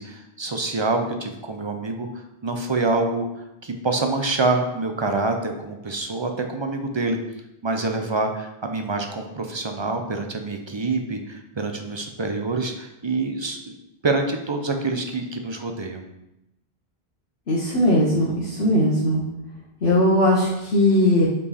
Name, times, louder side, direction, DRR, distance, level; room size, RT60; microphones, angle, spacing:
voice 1, 0.0-2.1 2.4-3.2 3.6-7.2 7.6-13.7 14.0-16.0, right 3 dB, 35° right, 4 dB, 0.5 m, -26 dB
voice 2, 17.5-19.2 19.8-21.3, left 1 dB, 85° left, -6 dB, 1.3 m, -19 dB
5.6 x 4.7 x 4.1 m, 0.91 s
omnidirectional pair, 1.0 m